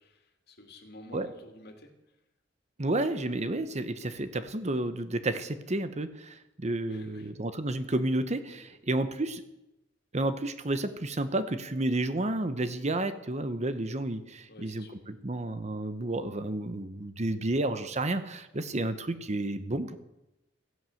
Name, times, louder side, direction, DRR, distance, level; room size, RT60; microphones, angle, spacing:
voice 1, 0.0-1.9 6.9-7.3 8.5-8.6 14.4-15.1, left 1 dB, 60° left, 4 dB, 2.5 m, -50 dB
voice 2, 2.8-9.4 10.1-20.0, right 2 dB, 35° right, 11 dB, 1.0 m, -31 dB
14.5 x 11.0 x 7.8 m, 0.92 s
head